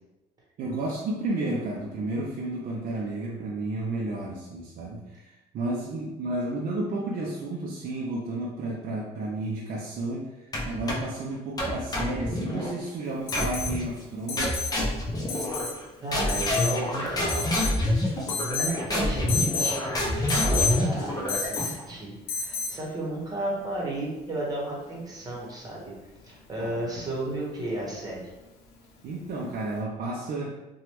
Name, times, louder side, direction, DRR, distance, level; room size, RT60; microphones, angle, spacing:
voice 1, 0.6-14.8 26.6-26.8 29.0-30.6, right 2 dB, 55° right, -3 dB, 0.5 m, -32 dB
sound 1, 10.5-11.2 11.6-12.7 13.3-13.9 14.4-15.8 16.1-21.8, left 1 dB, 20° left, 0.7 m, -27 dB
Alarm, 13.3-13.7 14.3-14.8 15.3-15.7 16.3-16.8 17.3-17.8 18.3-18.8 19.3-19.7 20.3-20.8 21.3-21.8 22.3-22.8 24.5-24.6, left 5 dB, 75° left, 0.6 m, -30 dB
voice 2, 16.0-17.7 18.0-25.9 26.2-28.3, right 1 dB, 20° right, -4 dB, 1.1 m, -33 dB
3.0 x 2.3 x 2.9 m, 1.0 s
cardioid pair, 110°, 17 cm